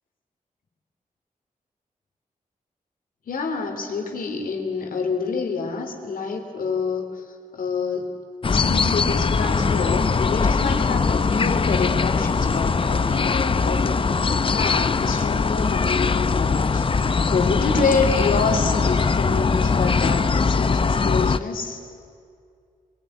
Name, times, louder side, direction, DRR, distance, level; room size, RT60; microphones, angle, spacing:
voice 1, 3.3-7.1 7.5-8.1 8.5-21.8, left 4 dB, 80° left, 4 dB, 3.2 m, -27 dB
sound 1, 8.4-21.4, left 4 dB, 40° left, 0.7 m, -21 dB
24.0 x 21.5 x 9.6 m, 2.3 s
cardioid pair, 80°, 14 cm